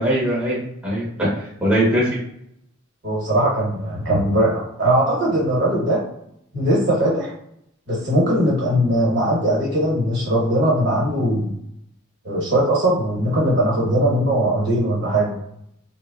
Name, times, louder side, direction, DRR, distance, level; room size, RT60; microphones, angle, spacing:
voice 1, 0.0-2.1, right 1 dB, 5° right, -7 dB, 0.8 m, -21 dB
voice 2, 3.0-6.0 6.5-7.3 7.9-11.5 12.2-15.4, right 1 dB, 60° right, -3 dB, 1.1 m, -20 dB
3.2 x 2.1 x 2.3 m, 0.76 s
head